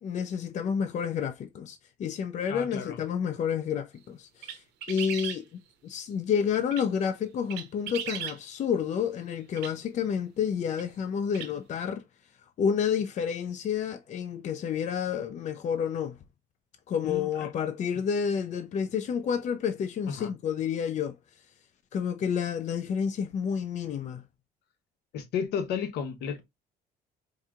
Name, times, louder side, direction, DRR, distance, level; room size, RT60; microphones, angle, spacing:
voice 1, 0.0-5.5 5.8-12.0 12.6-16.2 16.9-21.2 21.9-24.2, left 7 dB, 45° left, 0.5 m, -30 dB
voice 2, 2.5-3.0 17.0-17.5 20.2-20.3 25.1-26.4, left 7 dB, 75° left, 0.9 m, -33 dB
sound 1, 4.4-5.4 6.5-6.9 7.5-8.4 9.6-9.7 10.8-10.9 11.3-11.5, right 9 dB, 85° right, 0.8 m, -37 dB
4.7 x 2.7 x 2.4 m
cardioid pair, 110°, 17 cm